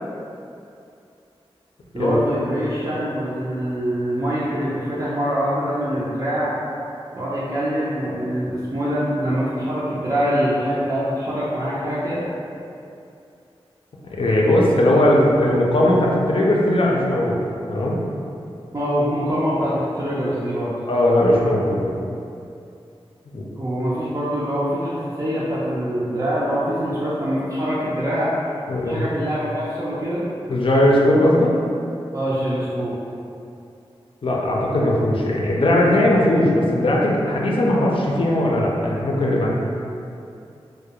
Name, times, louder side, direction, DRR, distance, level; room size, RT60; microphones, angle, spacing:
voice 1, 1.9-6.5 7.1-12.2 18.7-20.7 23.5-28.3 28.8-30.2 32.1-32.9, equal, 35° right, -10 dB, 0.4 m, -24 dB
voice 2, 14.0-17.4 17.7-18.0 20.9-21.9 23.3-23.4 28.7-29.1 30.5-31.5 34.2-39.5, left 1 dB, 60° left, -3 dB, 0.4 m, -18 dB
2.3 x 2.1 x 2.8 m, 2.6 s
cardioid pair, 50°, 10 cm